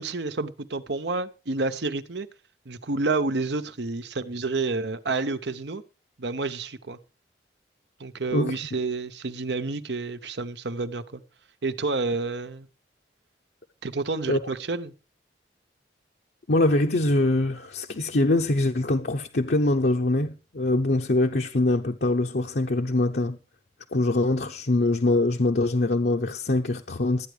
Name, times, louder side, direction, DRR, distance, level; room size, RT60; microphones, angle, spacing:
voice 1, 0.0-2.3 2.6-5.8 6.2-7.0 8.0-11.2 11.6-12.7 13.8-14.9, right 3 dB, 75° right, 0.9 m, -29 dB
voice 2, 16.5-23.4 23.9-27.3, left 2 dB, 65° left, 0.8 m, -23 dB
13.0 x 9.3 x 5.0 m
head